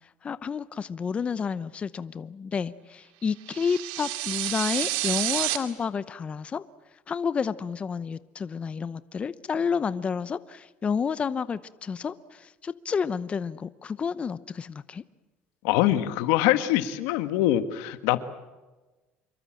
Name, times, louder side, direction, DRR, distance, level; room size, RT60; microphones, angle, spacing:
voice 1, 0.2-6.6 7.1-15.0, left 6 dB, 30° left, 15 dB, 0.7 m, -30 dB
sound 1, 3.5-5.6, right 16 dB, 90° right, 2.4 m, -29 dB
voice 2, 15.6-18.2, left 14 dB, 85° left, 11 dB, 1.6 m, -23 dB
26.5 x 23.5 x 7.6 m, 1.2 s
cardioid pair, 120°, 4 cm